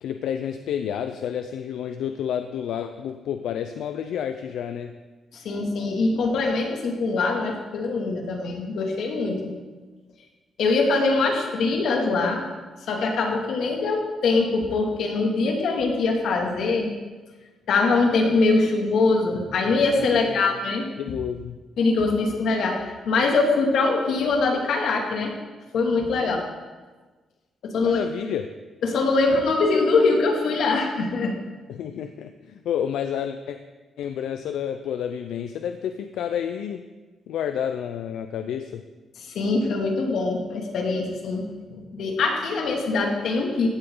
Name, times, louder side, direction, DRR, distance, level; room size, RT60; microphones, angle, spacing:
voice 1, 0.0-4.9 20.3-20.6 21.0-21.6 26.2-26.4 27.8-28.5 31.7-33.6 34.0-36.8 37.3-38.8, left 9 dB, 85° left, 8 dB, 0.6 m, -30 dB
voice 2, 5.3-9.5 10.6-12.4 12.9-16.9 17.7-20.9 21.8-25.3 25.7-26.4 27.6-28.0 28.8-31.4 39.3-43.7, left 3 dB, 65° left, 1 dB, 2.4 m, -23 dB
16.0 x 12.0 x 3.9 m, 1.3 s
cardioid pair, 175°, 0 cm